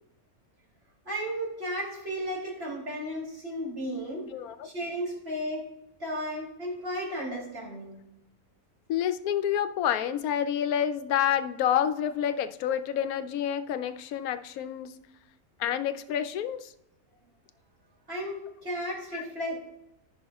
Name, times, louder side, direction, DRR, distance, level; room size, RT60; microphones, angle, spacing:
voice 1, 1.0-4.3 4.6-5.6 6.0-8.0 18.1-19.6, equal, 45° right, -3 dB, 2.9 m, -34 dB
voice 2, 4.3-4.7 8.9-14.9 15.6-16.7 19.1-19.2, left 9 dB, 80° left, 12 dB, 1.0 m, -28 dB
14.0 x 5.8 x 2.3 m, 0.86 s
omnidirectional pair, 1.5 m